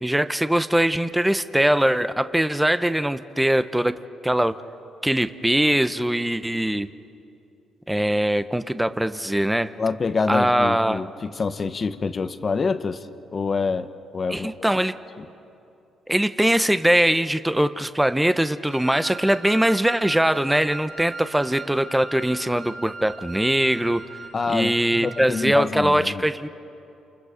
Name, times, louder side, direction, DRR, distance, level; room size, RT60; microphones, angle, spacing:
voice 1, 0.0-4.0 4.2-4.6 5.0-6.9 7.9-9.7 10.3-11.0 14.3-14.9 16.1-24.0 24.5-26.5, right 1 dB, 5° right, 12 dB, 0.8 m, -21 dB
voice 2, 9.8-13.1 13.3-13.9 14.1-14.7 15.2-15.3 24.3-26.3, left 4 dB, 35° left, 10 dB, 1.1 m, -26 dB
Wind instrument woodwind instrument, 18.7-25.4, right 3 dB, 80° right, 5.2 m, -39 dB
29.0 x 28.5 x 5.1 m, 2.8 s
cardioid pair, 90°, 0 cm